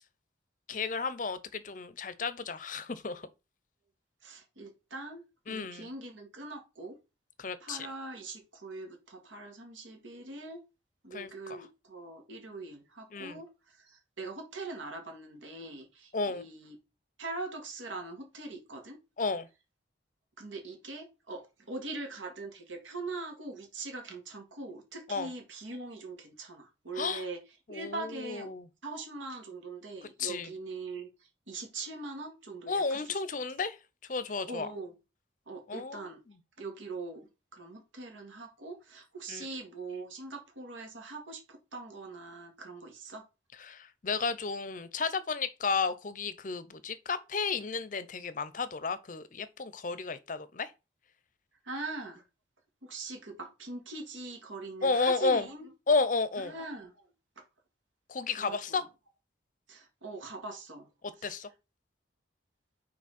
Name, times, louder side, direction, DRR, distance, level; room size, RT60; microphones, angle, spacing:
voice 1, 0.7-3.3 5.5-5.9 7.4-7.9 11.1-11.7 13.1-13.4 16.1-16.5 19.2-19.5 25.1-25.3 26.9-27.3 27.7-28.7 30.2-30.5 32.7-33.8 34.1-34.7 35.7-36.4 39.3-39.5 43.6-50.7 54.8-55.5 55.9-56.5 58.1-58.8 61.2-61.5, left 4 dB, 40° left, 0.6 m, -32 dB
voice 2, 4.2-7.0 7.6-10.6 11.0-16.8 17.2-19.0 20.4-27.4 27.7-28.5 28.8-31.1 31.5-33.2 34.5-34.9 35.5-36.2 36.6-37.3 37.5-43.2 51.6-52.2 52.8-55.7 56.5-57.1 57.4-57.5 58.4-58.8 59.7-60.9 61.2-61.3, right 3 dB, 85° right, 2.2 m, -42 dB
6.1 x 4.3 x 4.2 m
head